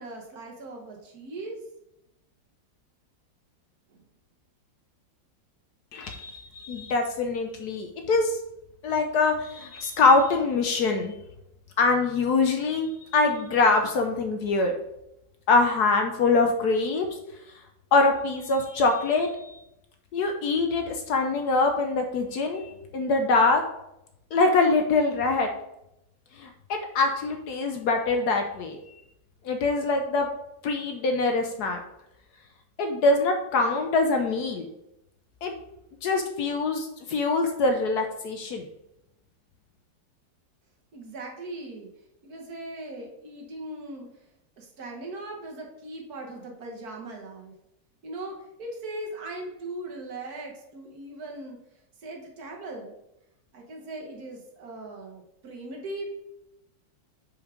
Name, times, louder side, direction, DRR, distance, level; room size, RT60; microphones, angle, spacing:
voice 1, 0.0-1.6 3.9-4.0 40.9-41.9 42.2-44.1 44.6-47.5 48.0-51.6 52.0-52.9 53.5-56.1, right 2 dB, 55° right, 0 dB, 1.6 m, -39 dB
voice 2, 5.9-8.3 8.8-11.1 11.8-14.7 15.5-17.1 17.9-19.3 20.1-23.6 24.3-25.5 26.4-28.8 29.4-30.3 30.6-31.8 32.8-34.7 35.4-35.5 36.0-38.7, left 3 dB, 65° left, 5 dB, 1.1 m, -24 dB
5.3 x 4.8 x 5.0 m, 0.86 s
omnidirectional pair, 2.0 m